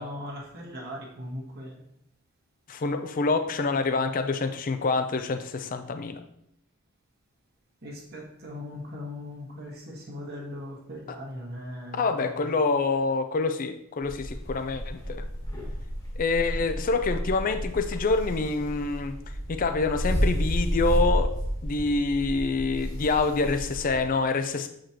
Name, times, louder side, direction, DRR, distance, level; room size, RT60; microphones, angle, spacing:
voice 1, 0.0-1.8 7.8-12.6, left 1 dB, 45° right, -2 dB, 1.5 m, -39 dB
voice 2, 2.7-6.2 11.9-15.3 16.2-19.1 19.5-21.3 21.6-24.7, left 3 dB, 40° left, 8 dB, 0.4 m, -26 dB
sound 1, 14.0-24.1, equal, 15° left, 1.3 m, -31 dB
7.6 x 5.0 x 2.9 m, 0.76 s
head